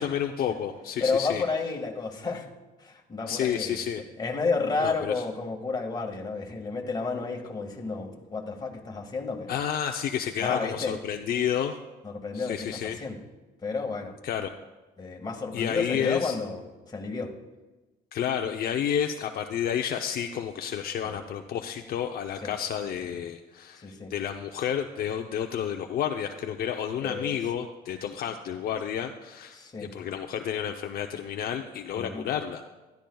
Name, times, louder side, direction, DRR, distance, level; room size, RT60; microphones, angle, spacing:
voice 1, 0.0-1.4 3.3-4.0 4.8-5.2 9.5-11.8 12.3-13.0 14.2-14.5 15.5-16.4 18.1-32.6, left 9 dB, 60° left, 4 dB, 0.7 m, -30 dB
voice 2, 1.0-2.5 2.8-3.8 4.2-9.5 10.4-10.9 12.0-13.2 13.6-14.1 15.0-16.6 16.9-17.3 21.0-21.2 22.4-22.5 23.8-24.1 27.0-27.4 29.5-29.9 32.0-32.2, left 4 dB, 25° left, 1 dB, 1.9 m, -31 dB
20.5 x 13.0 x 2.3 m, 1.2 s
cardioid pair, 110°, 17 cm